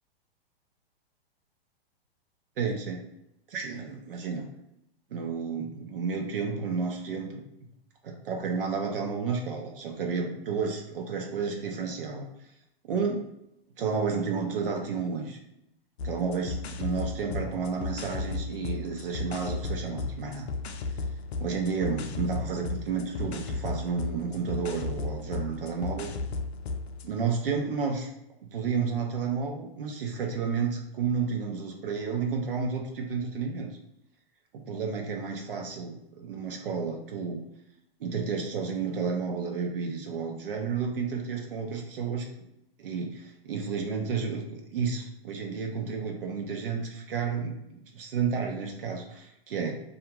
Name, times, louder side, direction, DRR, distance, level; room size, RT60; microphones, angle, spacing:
voice 1, 2.6-3.0 3.5-4.5 5.1-7.4 8.0-12.3 12.8-13.2 13.8-15.4 16.0-20.5 21.4-26.1 27.0-28.1 28.5-33.7 34.5-37.4 38.0-42.3 42.8-49.8, right 5 dB, 60° right, 2 dB, 0.7 m, -31 dB
sound 1, 16.0-27.1, left 3 dB, 85° left, 0.5 m, -35 dB
2.4 x 2.3 x 2.9 m, 0.82 s
hypercardioid pair, 170°, 31 cm